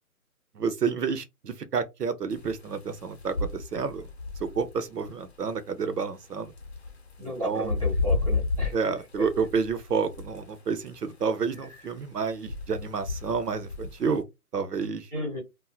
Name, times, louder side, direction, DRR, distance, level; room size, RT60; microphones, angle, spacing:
voice 1, 0.6-4.0 4.4-6.5 7.2-7.7 8.7-14.2 14.5-15.1, right 5 dB, 85° right, 0.8 m, -29 dB
sound 1, 2.3-2.6 3.1-5.1 6.5-7.1 7.6-8.8 9.1-10.4 12.4-14.2, left 3 dB, 45° left, 0.7 m, -31 dB
voice 2, 7.2-8.9 9.1-9.3 11.6-11.7 15.1-15.4, right 1 dB, 15° right, 1.4 m, -34 dB
3.1 x 2.2 x 2.3 m
figure-of-eight pair, 155°, 46 cm